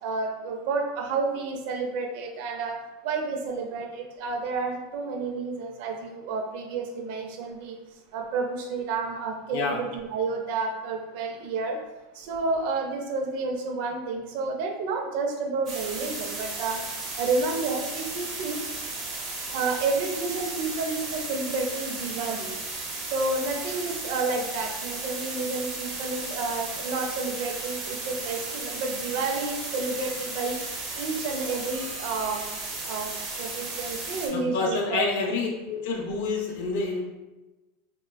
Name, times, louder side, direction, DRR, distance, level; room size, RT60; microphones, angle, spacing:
voice 1, 0.0-2.8 3.0-7.8 8.1-11.8 12.1-16.8 17.2-18.6 19.5-22.5 23.1-30.6 30.9-32.4 32.8-33.1 33.4-35.1, right 3 dB, 60° right, 2 dB, 0.5 m, -30 dB
sound 1, 15.7-34.3, right 3 dB, 25° right, 0.9 m, -35 dB
voice 2, 34.3-37.0, left 4 dB, 65° left, 0 dB, 0.5 m, -28 dB
4.1 x 2.2 x 2.2 m, 1.1 s
supercardioid pair, 135°, 0 cm